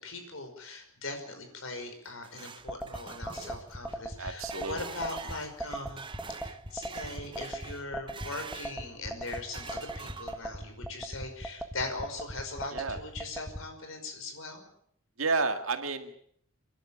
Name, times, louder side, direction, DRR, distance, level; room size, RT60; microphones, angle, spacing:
voice 1, 0.0-6.0 6.4-14.7, left 2 dB, 65° left, 6 dB, 5.4 m, -40 dB
sound 1, 1.8-8.8 9.2-10.6, right 5 dB, 25° right, 0.8 m, -46 dB
sound 2, 2.7-13.6, right 1 dB, ahead, 1.5 m, -38 dB
voice 2, 4.2-4.9 12.7-13.0 15.2-16.2, right 3 dB, 70° right, 6 dB, 2.1 m, -31 dB
29.5 x 11.5 x 8.7 m, 0.67 s
head